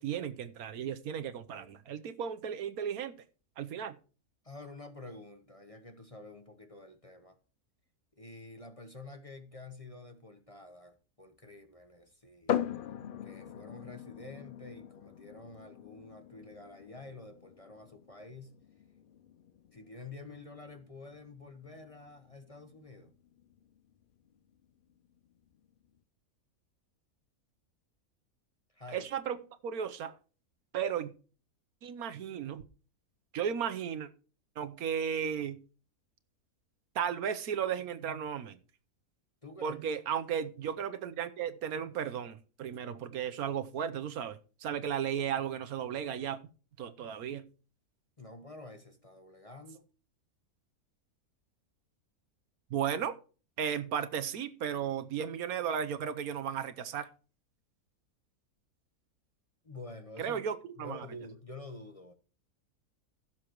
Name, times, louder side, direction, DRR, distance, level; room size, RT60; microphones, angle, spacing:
voice 1, 0.0-3.1 3.6-3.9 28.9-30.2 30.7-31.1 31.8-32.6 33.3-34.1 34.6-35.6 36.9-38.6 39.6-46.4 46.8-47.4 52.7-53.2 53.6-57.1 60.2-61.1, right 8 dB, 75° right, 1.3 m, -35 dB
voice 2, 4.4-7.4 8.2-12.6 13.2-18.5 19.7-23.1 28.7-29.1 39.4-39.8 48.2-49.9 59.6-60.4 60.8-62.1, left 2 dB, 25° left, 1.0 m, -49 dB
sound 1, 12.5-26.0, left 10 dB, 85° left, 0.4 m, -42 dB
16.0 x 7.3 x 3.0 m
omnidirectional pair, 1.6 m